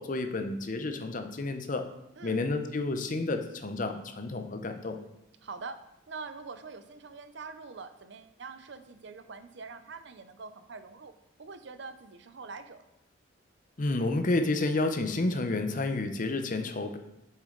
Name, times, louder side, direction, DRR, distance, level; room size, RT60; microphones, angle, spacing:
voice 1, 0.0-1.9 2.2-5.0 13.8-17.0, left 2 dB, 40° left, 7 dB, 0.6 m, -30 dB
voice 2, 2.2-2.5 5.4-11.1 11.4-12.8, right 4 dB, 60° right, 10 dB, 0.6 m, -44 dB
7.4 x 6.4 x 3.8 m, 0.87 s
head